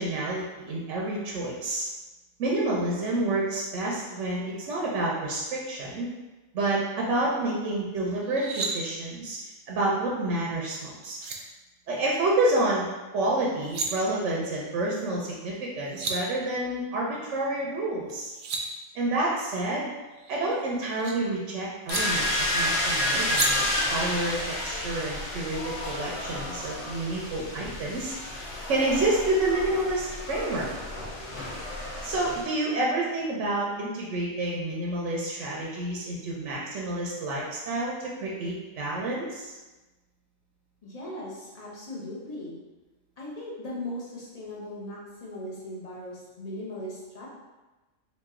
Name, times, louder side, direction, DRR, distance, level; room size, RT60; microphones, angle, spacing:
voice 1, 0.0-1.8 2.4-6.1 6.5-9.4 9.7-11.2 11.9-12.9 13.1-18.3 18.9-19.9 20.3-28.1 28.7-30.7 32.0-39.5, right 2 dB, 65° right, -4 dB, 0.9 m, -29 dB
sound 1, 8.2-8.7 10.8-10.9 11.2-11.4 13.4-13.9 15.6-15.7 15.8-16.2 18.1-18.6 20.1-21.1 21.9-22.0 23.3-23.5, right 4 dB, 85° right, 0.4 m, -32 dB
sound 2, 21.9-32.4, left 1 dB, 65° left, 1.1 m, -31 dB
voice 2, 40.8-42.6 43.2-47.3, left 1 dB, 35° left, -5 dB, 0.7 m, -38 dB
3.0 x 2.6 x 3.5 m, 1.1 s
omnidirectional pair, 1.4 m